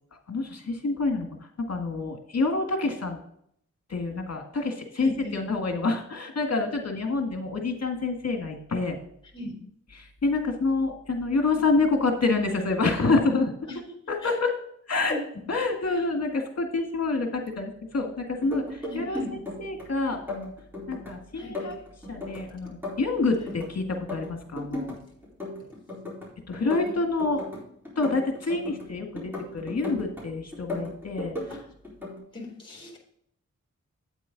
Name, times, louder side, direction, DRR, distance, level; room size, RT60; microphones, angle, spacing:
voice 1, 0.3-3.2 3.9-9.0 9.9-13.5 14.1-14.5 14.9-15.2 15.5-20.5 20.9-21.7 22.1-25.0 26.5-27.4 28.0-31.3, left 3 dB, 60° left, 4 dB, 1.6 m, -27 dB
voice 2, 5.0-5.4 9.3-9.6 13.7-14.0 14.2-14.4 15.1-15.4 15.8-16.0 18.9-19.3 21.3-21.7 26.8-26.9 31.5-31.7 32.3-33.0, left 1 dB, 15° left, -1 dB, 3.6 m, -39 dB
sound 1, 18.3-19.8 20.1-21.1 21.4-23.7 23.9-25.0 25.2-26.3 26.5-28.8 29.2-30.2 30.5-31.6 31.8-32.2, left 2 dB, 5° right, 4.1 m, -35 dB
8.7 x 8.3 x 3.9 m, 0.70 s
wide cardioid pair, 85°, 30 cm